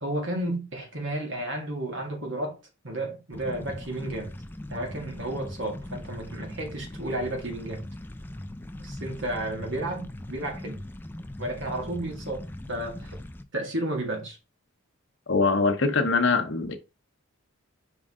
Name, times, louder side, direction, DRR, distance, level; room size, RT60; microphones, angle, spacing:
voice 1, 0.0-2.6 2.8-4.3 4.7-7.8 8.8-10.8 11.4-13.2 13.5-14.4, right 1 dB, 60° right, 2.0 m, -32 dB
sound 1, 3.3-13.4, left 1 dB, 10° left, 0.4 m, -40 dB
voice 2, 15.3-16.8, left 4 dB, 60° left, 1.0 m, -23 dB
5.3 x 4.8 x 3.7 m
head